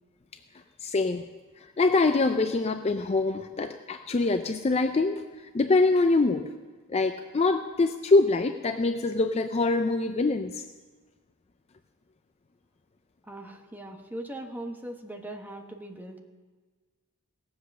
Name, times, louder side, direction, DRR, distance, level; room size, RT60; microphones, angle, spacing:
voice 1, 0.8-1.2 1.8-5.2 5.5-6.5 6.9-10.6, left 3 dB, 30° left, 8 dB, 0.4 m, -24 dB
voice 2, 13.3-16.2, right 1 dB, 10° right, 3 dB, 1.0 m, -40 dB
18.5 x 7.6 x 6.5 m, 1.4 s
head